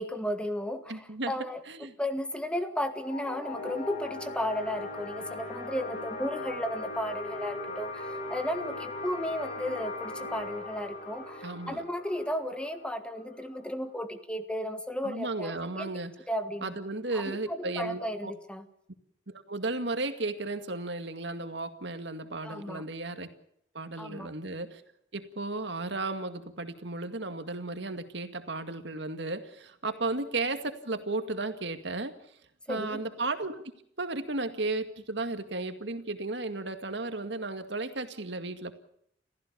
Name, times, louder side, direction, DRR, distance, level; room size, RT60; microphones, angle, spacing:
voice 1, 0.0-15.9 16.3-16.7 17.1-18.6 22.4-22.9 24.0-24.3 32.7-33.0, equal, 5° left, 8 dB, 1.5 m, -34 dB
voice 2, 0.9-1.3 1.7-1.9 11.4-11.8 15.0-16.1 16.6-18.3 19.3-23.3 23.7-24.8 25.1-32.2 32.7-33.6 34.0-38.7, right 2 dB, 65° right, 8 dB, 2.1 m, -34 dB
sound 1, 3.0-14.1, left 2 dB, 45° left, 6.1 m, -39 dB
29.0 x 15.0 x 7.0 m, 0.72 s
head